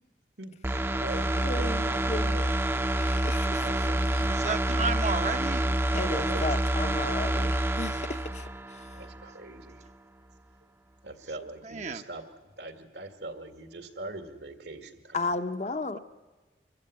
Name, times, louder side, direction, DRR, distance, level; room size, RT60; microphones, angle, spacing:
voice 1, 0.4-2.5 3.5-4.4 5.9-6.4 8.9-9.8 11.0-15.3, right 2 dB, 75° right, 2.1 m, -42 dB
sound 1, 0.6-9.3 9.7-9.8, right 1 dB, 15° right, 0.7 m, -28 dB
voice 2, 1.4-2.4 3.0-3.7 5.9-9.0 15.1-16.0, left 3 dB, 40° left, 0.8 m, -34 dB
voice 3, 4.3-5.7 11.6-12.0 15.9-16.0, right 4 dB, 40° right, 0.9 m, -32 dB
24.5 x 14.5 x 9.6 m
head